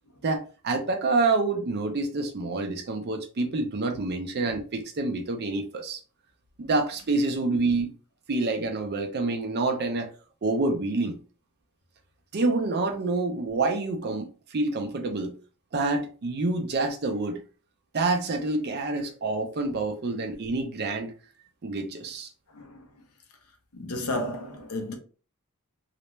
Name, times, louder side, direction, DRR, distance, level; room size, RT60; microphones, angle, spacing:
voice 1, 0.2-6.0 6.6-7.9 8.3-10.1 10.4-11.1 12.3-15.3 15.7-17.4 17.9-21.1 21.6-22.3, right 3 dB, 45° right, 0.5 m, -27 dB
voice 2, 22.5-22.9 23.7-24.9, left 1 dB, 80° left, 0.7 m, -32 dB
2.4 x 2.1 x 3.0 m
head